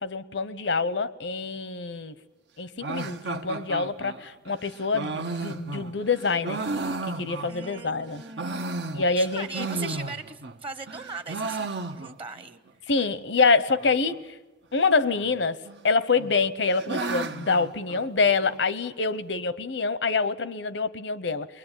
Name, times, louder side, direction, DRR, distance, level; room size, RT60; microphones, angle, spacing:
voice 1, 0.0-2.1 2.6-6.6 7.1-8.2 8.9-9.9 12.9-14.4 14.7-15.6 15.8-21.5, left 4 dB, 85° left, 16 dB, 0.9 m, -26 dB
sound 1, 2.8-7.8 8.2-10.6 10.9-12.4 12.7-12.8 13.0-13.1 13.7-14.2 15.2-15.8 16.2-18.6, right 3 dB, 70° right, 1.0 m, -34 dB
voice 2, 7.5-8.8 9.0-12.6, right 4 dB, 30° right, 10 dB, 1.1 m, -39 dB
28.5 x 22.0 x 9.1 m, 1.1 s
head